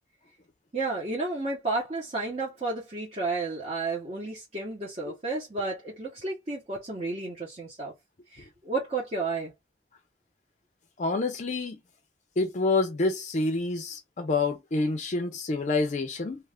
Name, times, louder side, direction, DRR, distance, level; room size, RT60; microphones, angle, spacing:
voice 1, 0.7-7.9 8.3-9.5, right 3 dB, 40° right, 0.9 m, -32 dB
voice 2, 11.0-11.8 12.4-16.4, left 3 dB, 40° left, 0.4 m, -27 dB
2.4 x 2.4 x 3.4 m
head